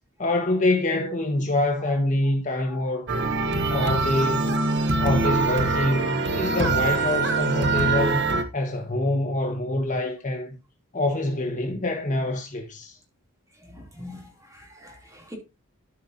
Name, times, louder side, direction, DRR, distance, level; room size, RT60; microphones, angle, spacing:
voice 1, 0.2-3.1 3.7-4.6 5.0-8.3 8.5-10.6 10.9-12.9, left 2 dB, 35° left, 1.4 m, -25 dB
sound 1, 3.1-8.4, right 3 dB, 55° right, 1.2 m, -24 dB
voice 2, 13.6-15.4, left 2 dB, 15° right, 2.9 m, -44 dB
13.0 x 5.6 x 2.7 m
head